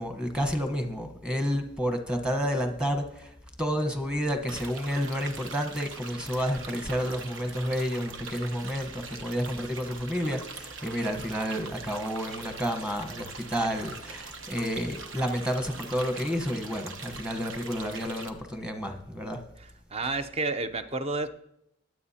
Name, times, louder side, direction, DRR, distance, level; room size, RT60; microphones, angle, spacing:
voice 1, 0.0-3.3 3.6-19.4, equal, 5° right, 5 dB, 1.1 m, -30 dB
sound 1, 4.5-18.3, right 4 dB, 70° right, 1.0 m, -42 dB
voice 2, 19.6-21.3, right 3 dB, 30° right, 10 dB, 0.6 m, -31 dB
23.0 x 7.7 x 2.8 m, 0.79 s
head